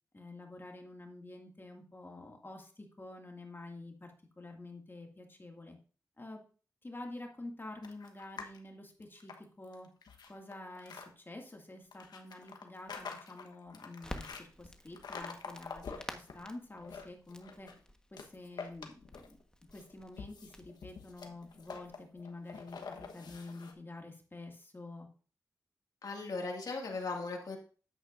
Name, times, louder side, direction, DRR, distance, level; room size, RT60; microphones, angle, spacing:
voice 1, 0.1-5.8 6.2-6.4 6.8-9.9 10.3-17.7 18.1-19.4 19.7-25.1, left 2 dB, 30° left, 2 dB, 2.1 m, -48 dB
sound 1, 7.8-8.6 9.0-11.1 11.9-14.4 14.9-16.3 16.7-17.8 18.1-19.4 19.7-23.7, left 5 dB, 85° left, 1.1 m, -47 dB
Crackle, 14.0-21.9, left 1 dB, 10° left, 1.3 m, -51 dB
voice 2, 26.0-27.6, left 3 dB, 70° left, 1 dB, 2.0 m, -38 dB
10.0 x 8.2 x 2.6 m, 0.39 s
cardioid pair, 45°, 7 cm